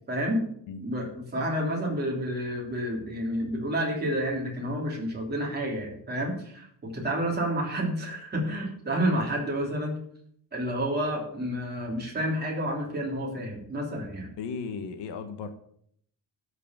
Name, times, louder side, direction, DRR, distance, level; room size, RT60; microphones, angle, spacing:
voice 1, 0.1-0.4 0.8-10.0 10.5-14.3, equal, 20° right, -2 dB, 3.1 m, -30 dB
voice 2, 14.4-15.5, left 5 dB, 65° left, 7 dB, 1.4 m, -35 dB
12.5 x 5.0 x 7.4 m, 0.65 s
cardioid pair, 175°, 44 cm